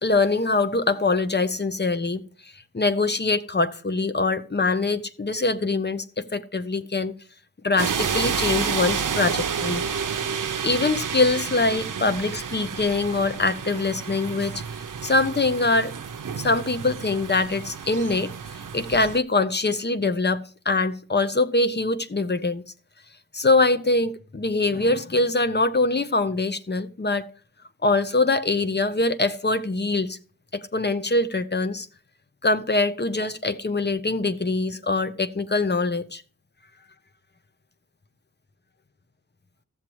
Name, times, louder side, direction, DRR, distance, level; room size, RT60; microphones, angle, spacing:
voice 1, 0.0-2.2 2.7-7.1 7.6-9.8 10.6-14.6 15.0-15.9 16.4-18.3 18.7-22.6 23.3-27.3 27.8-30.2 30.5-31.9 32.4-36.2, left 3 dB, 35° left, 0.8 m, -23 dB
sound 1, 7.8-19.2, right 6 dB, 90° right, 0.6 m, -30 dB
14.5 x 7.4 x 3.0 m
wide cardioid pair, 80°, 31 cm